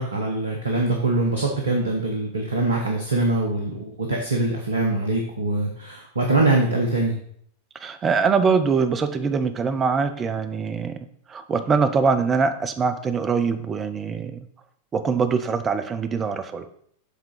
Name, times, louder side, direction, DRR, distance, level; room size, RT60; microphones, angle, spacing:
voice 1, 0.0-7.2, right 2 dB, 75° right, 1 dB, 1.0 m, -23 dB
voice 2, 7.8-11.0 11.3-14.4 14.9-16.7, right 5 dB, 25° right, 9 dB, 0.7 m, -23 dB
7.2 x 3.8 x 5.5 m, 0.64 s
figure-of-eight pair, 90°, 0 cm